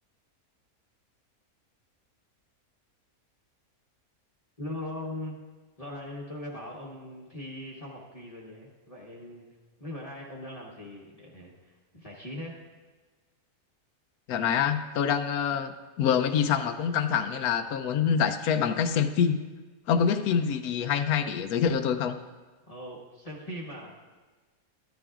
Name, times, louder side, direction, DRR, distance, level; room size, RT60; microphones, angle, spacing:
voice 1, 4.6-5.4 5.8-9.5 9.8-12.6 22.6-24.2, left 1 dB, 25° left, -4 dB, 1.1 m, -40 dB
voice 2, 14.3-19.4 19.9-22.1, left 7 dB, 85° left, 10 dB, 1.1 m, -26 dB
13.0 x 10.5 x 2.5 m, 1.3 s
omnidirectional pair, 1.5 m